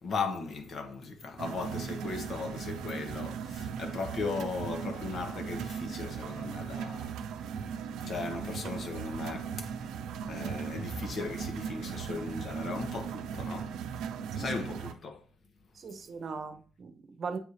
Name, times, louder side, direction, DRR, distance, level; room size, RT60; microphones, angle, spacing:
voice 1, 0.0-7.2 8.0-9.9 10.3-13.8 14.3-15.2, left 4 dB, 55° left, 1.1 m, -37 dB
sound 1, 1.4-14.9, right 7 dB, 85° right, 0.5 m, -38 dB
voice 2, 15.7-17.4, right 5 dB, 50° right, 0.9 m, -39 dB
8.2 x 2.7 x 4.8 m
cardioid pair, 90°, 0 cm